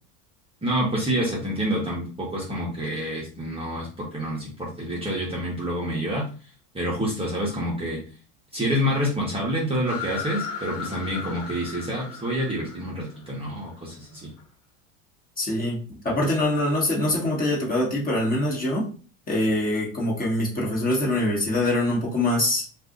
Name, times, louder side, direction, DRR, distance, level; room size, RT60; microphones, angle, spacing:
voice 1, 0.6-6.2 6.7-8.0 8.5-14.3, equal, 15° right, -4 dB, 0.8 m, -27 dB
sound 1, 9.8-14.4, left 6 dB, 65° left, 1.3 m, -37 dB
voice 2, 15.4-18.9 19.3-22.6, left 1 dB, 20° left, -3 dB, 1.3 m, -24 dB
2.5 x 2.5 x 3.7 m, 0.39 s
supercardioid pair, 110°, 39 cm